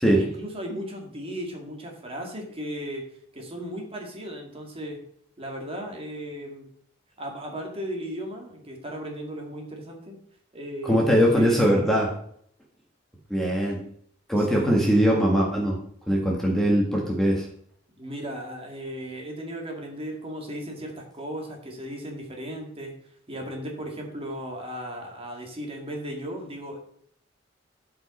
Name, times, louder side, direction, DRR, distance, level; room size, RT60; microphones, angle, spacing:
voice 1, 0.2-3.0 3.3-5.0 5.4-6.7 7.2-10.2 10.5-12.2 14.4-15.0 18.0-22.9 23.3-26.8, equal, 30° right, 1 dB, 2.1 m, -36 dB
voice 2, 10.8-12.1 13.3-13.8 14.3-15.8 16.1-17.5, equal, ahead, -2 dB, 1.5 m, -21 dB
12.5 x 5.1 x 4.3 m, 0.65 s
head